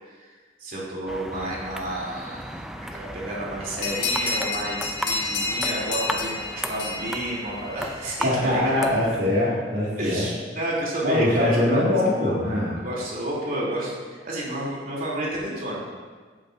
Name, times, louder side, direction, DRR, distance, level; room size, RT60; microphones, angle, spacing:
voice 1, 0.6-8.9 10.0-12.0 12.2-12.3 12.8-15.8, right 1 dB, 50° right, -5 dB, 3.3 m, -31 dB
sound 1, 1.1-9.2, equal, 5° right, 0.5 m, -35 dB
sound 2, 3.8-8.1, left 3 dB, 75° left, 1.5 m, -29 dB
voice 2, 8.2-10.3 11.0-12.7, left 1 dB, 70° right, -9 dB, 2.3 m, -22 dB
16.0 x 8.8 x 2.7 m, 1.5 s
head